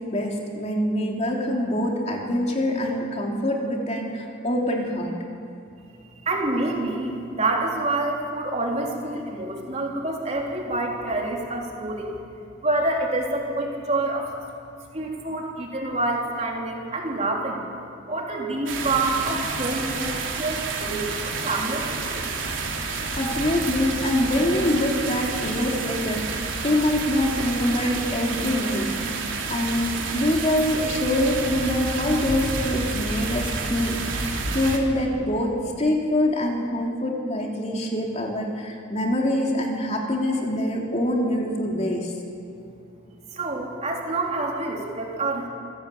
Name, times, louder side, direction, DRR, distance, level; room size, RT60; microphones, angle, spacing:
voice 1, 0.1-5.1 23.2-29.1 29.5-42.1, left 1 dB, 35° left, 0 dB, 3.1 m, -25 dB
voice 2, 6.2-12.2 12.6-14.3 14.9-17.6 18.1-22.3 43.3-45.5, right 2 dB, 35° right, -1 dB, 3.5 m, -27 dB
sound 1, 18.7-34.8, right 4 dB, 85° right, 3.3 m, -29 dB
27.0 x 16.0 x 8.4 m, 2.5 s
head